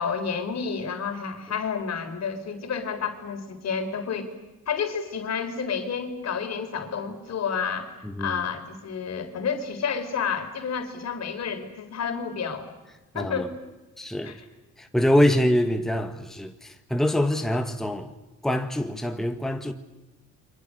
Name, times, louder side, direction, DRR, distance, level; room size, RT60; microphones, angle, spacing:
voice 1, 0.0-4.3 4.7-7.9 8.2-12.7 13.1-13.5 14.2-14.4, left 6 dB, 60° left, 4.0 m, -30 dB
voice 2, 8.0-8.4 13.1-13.5 14.0-14.4 14.8-18.1 18.4-19.7, left 1 dB, ahead, 1.5 m, -24 dB
30.0 x 24.5 x 6.5 m
cardioid pair, 90°, 30 cm